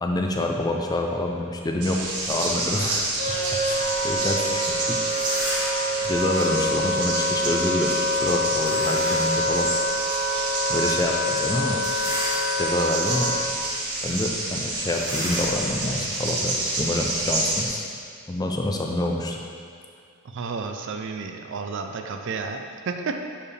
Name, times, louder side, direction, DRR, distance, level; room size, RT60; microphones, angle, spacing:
voice 1, 0.0-3.0 3.6-5.0 6.0-10.0 10.7-11.8 12.6-13.3 14.0-17.8 18.3-19.4, left 1 dB, 15° left, 1 dB, 0.4 m, -27 dB
sound 1, 1.8-17.7, right 2 dB, 90° right, 1.0 m, -29 dB
Wind instrument woodwind instrument, 3.2-13.5, equal, 40° right, 1.5 m, -26 dB
sound 2, 5.0-5.9 8.6-9.4 9.9-10.0 11.7-12.8 13.4-13.6 13.9-14.0 14.9-17.3, equal, 20° right, 1.5 m, -33 dB
voice 2, 20.3-23.2, right 4 dB, 55° right, 5 dB, 0.4 m, -31 dB
7.2 x 4.8 x 3.3 m, 2.2 s
head